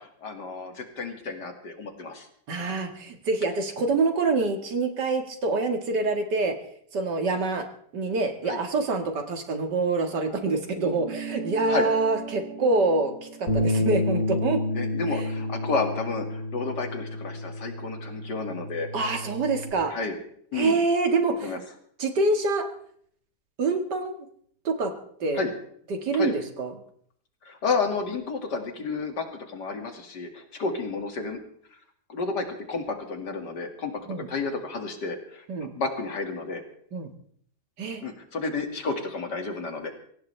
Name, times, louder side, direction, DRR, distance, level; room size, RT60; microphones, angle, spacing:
voice 1, 0.0-2.3 8.5-8.6 11.7-11.9 14.7-18.9 19.9-20.2 20.5-20.8 21.4-21.6 25.3-25.5 26.1-26.3 27.5-31.4 32.1-33.9 34.3-35.4 35.8-36.6 38.0-39.9, left 4 dB, 85° left, 4 dB, 2.8 m, -31 dB
voice 2, 2.5-6.6 6.9-7.7 7.9-14.6 15.1-15.3 18.9-19.9 20.5-21.6 22.0-22.7 23.6-24.2 24.6-24.9 25.2-25.4 25.9-26.7 34.1-34.3 35.5-35.7 36.9-37.1 37.8-38.1, right 3 dB, 90° right, 5 dB, 2.5 m, -26 dB
sound 1, 10.9-15.7, right 5 dB, 70° right, 3.2 m, -40 dB
Bass guitar, 13.5-19.7, left 1 dB, 45° left, 4.7 m, -30 dB
23.0 x 17.0 x 3.4 m, 0.63 s
omnidirectional pair, 1.8 m